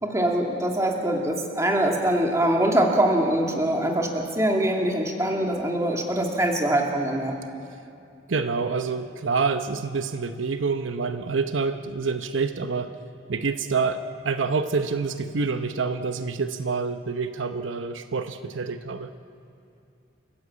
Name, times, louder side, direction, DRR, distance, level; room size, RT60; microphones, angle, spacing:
voice 1, 0.0-7.3, right 1 dB, 15° right, 1 dB, 2.4 m, -23 dB
voice 2, 8.3-12.9 13.3-19.1, right 4 dB, 80° right, 9 dB, 0.8 m, -27 dB
28.5 x 15.0 x 8.6 m, 2.5 s
head